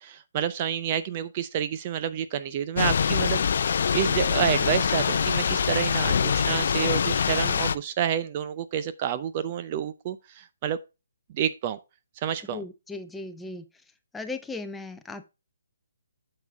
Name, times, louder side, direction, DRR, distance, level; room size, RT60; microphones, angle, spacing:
voice 1, 0.0-3.4 3.9-10.8 11.3-11.8 12.2-12.6, right 9 dB, 30° right, 0.5 m, -29 dB
Thunder / Rain, 2.8-7.8, left 7 dB, 55° left, 0.5 m, -24 dB
voice 2, 12.5-13.6 14.1-15.3, left 3 dB, 5° left, 0.7 m, -37 dB
8.2 x 6.7 x 3.4 m
hypercardioid pair, 155°, 0 cm